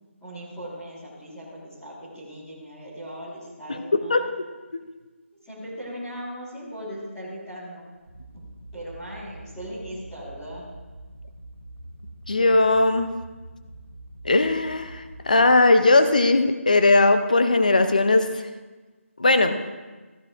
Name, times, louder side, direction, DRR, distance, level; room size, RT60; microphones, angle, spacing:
voice 1, 0.2-4.3 5.4-7.8 8.3-8.4 8.7-10.6, equal, 5° left, -12 dB, 1.5 m, -38 dB
sound 1, 8.0-15.4, equal, 35° right, 2.9 m, -45 dB
voice 2, 12.3-13.1 14.2-18.3 19.2-19.6, left 2 dB, 35° left, 9 dB, 0.5 m, -19 dB
15.0 x 11.5 x 2.5 m, 1.3 s
figure-of-eight pair, 180°, 8 cm